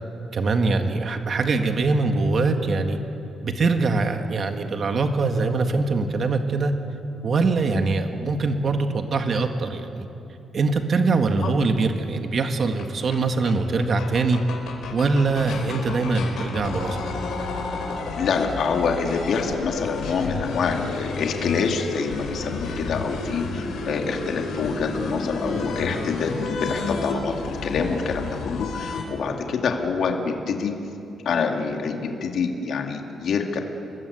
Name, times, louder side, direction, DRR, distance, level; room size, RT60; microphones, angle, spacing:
voice 1, 0.3-3.0 3.4-6.7 7.2-10.1 10.5-14.4 14.9-17.0, right 3 dB, 40° right, 5 dB, 1.7 m, -23 dB
sound 1, 12.8-12.9 13.1-13.2 13.4-13.5 13.8-29.0, left 3 dB, 75° left, 4.8 m, -31 dB
voice 2, 18.2-30.7 31.2-33.6, left 5 dB, 55° left, 2 dB, 2.4 m, -26 dB
29.0 x 20.5 x 8.4 m, 2.9 s
cardioid pair, 165°, 0 cm